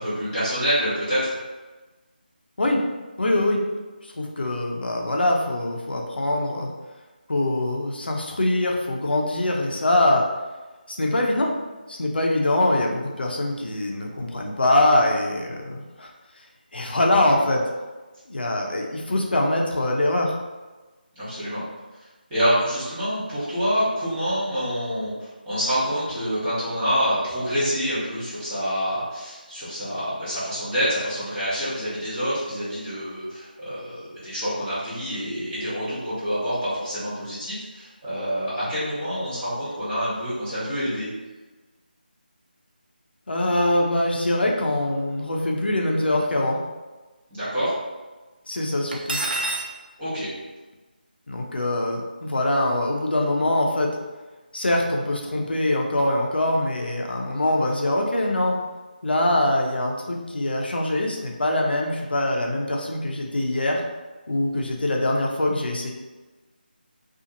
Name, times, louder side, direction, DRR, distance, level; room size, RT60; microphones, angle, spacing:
voice 1, 0.0-1.3 21.1-21.6 22.3-41.1 47.3-47.7 50.0-50.3, equal, 10° right, -14 dB, 0.9 m, -27 dB
voice 2, 3.2-3.6 4.0-6.7 7.3-10.2 10.9-11.5 11.9-16.1 16.7-17.6 18.3-20.3 43.3-46.6 48.5-49.2 51.3-53.9 54.5-58.6 59.0-63.8 64.3-65.9, left 1 dB, 80° left, 0 dB, 0.5 m, -23 dB
Cutlery silverware, 48.9-49.7, right 2 dB, 70° right, 0.4 m, -27 dB
2.6 x 2.4 x 2.7 m, 1.2 s
figure-of-eight pair, 170°, 5 cm